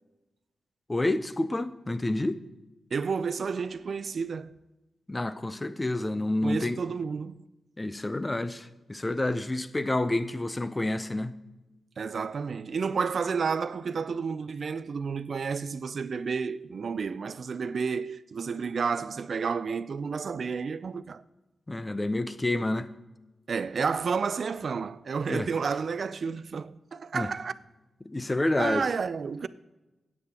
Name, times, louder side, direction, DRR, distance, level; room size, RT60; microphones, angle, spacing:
voice 1, 0.9-2.4 5.1-6.8 7.8-11.3 21.7-22.9 25.3-25.5 27.1-27.3 28.0-28.9, left 2 dB, 15° left, 0.5 m, -29 dB
voice 2, 2.9-4.6 6.4-7.4 12.0-21.2 23.5-27.5 28.6-29.5, right 5 dB, 50° right, 0.4 m, -31 dB
16.0 x 8.5 x 2.9 m
wide cardioid pair, 160°, 0 cm